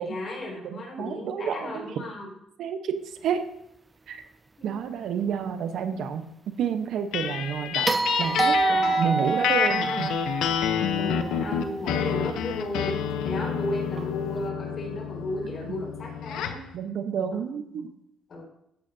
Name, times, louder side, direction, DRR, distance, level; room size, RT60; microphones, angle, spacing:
voice 1, 0.0-2.3 4.6-4.7 11.0-16.7 17.7-17.8 18.3-18.4, left 1 dB, 45° left, -1 dB, 4.7 m, -34 dB
voice 2, 0.6-1.9 2.6-3.5 4.1-4.2 4.6-6.3 6.6-10.1 15.6-15.8 16.7-17.9, right 7 dB, 70° right, 9 dB, 0.9 m, -30 dB
sound 1, 7.1-16.7, left 8 dB, 85° left, 0.8 m, -29 dB
sound 2, 7.9-12.1 14.4-14.5, right 3 dB, 20° right, 0.4 m, -27 dB
13.0 x 9.7 x 2.7 m, 0.77 s
cardioid pair, 90°, 0 cm